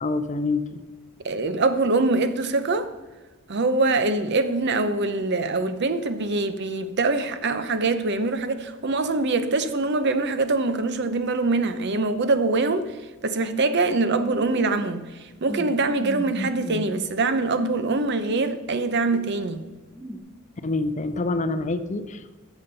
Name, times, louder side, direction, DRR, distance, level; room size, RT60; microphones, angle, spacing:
voice 1, 0.0-0.8 20.6-22.4, left 3 dB, 35° left, 0.5 m, -26 dB
voice 2, 1.2-2.9 3.5-12.9 13.2-15.0 15.4-19.6, right 3 dB, 55° right, 0.7 m, -23 dB
sound 1, 14.1-14.9 15.1-15.2 15.5-15.7 16.0-16.8 17.6-18.6 19.1-19.5 19.9-20.2, left 1 dB, 5° right, 0.8 m, -35 dB
13.0 x 7.1 x 4.1 m
head